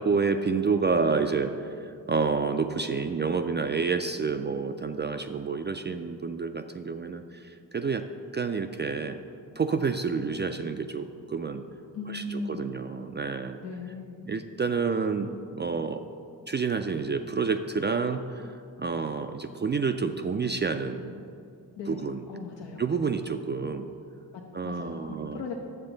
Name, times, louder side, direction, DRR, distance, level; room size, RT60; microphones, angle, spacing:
voice 1, 0.0-8.1 8.3-9.2 9.6-11.6 12.1-13.6 14.3-16.0 16.5-21.2 21.9-22.2 22.8-23.9 24.5-25.4, right 5 dB, 25° right, 7 dB, 0.3 m, -29 dB
voice 2, 11.9-12.9 13.6-14.3 21.8-22.8 24.3-25.6, left 3 dB, 75° left, 0 dB, 0.8 m, -38 dB
8.8 x 7.0 x 3.9 m, 2.5 s
supercardioid pair, 40°, 44 cm